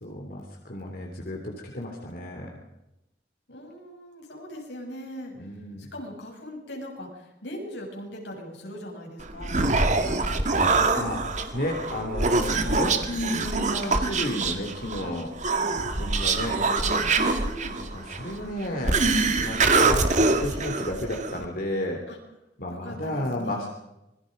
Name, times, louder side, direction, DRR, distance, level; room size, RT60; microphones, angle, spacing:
voice 1, 0.0-2.6 5.3-5.9 11.0-11.2 11.5-15.3 15.8-16.6 17.9-19.0 19.4-22.0 22.6-23.7, left 1 dB, 55° left, 1 dB, 3.0 m, -32 dB
voice 2, 3.5-9.8 16.4-17.9 22.1-22.2 22.7-23.7, equal, 85° left, 0 dB, 7.3 m, -40 dB
Human voice, 9.2-21.4, right 3 dB, 45° right, 2.1 m, -24 dB
26.0 x 22.5 x 5.3 m, 0.95 s
head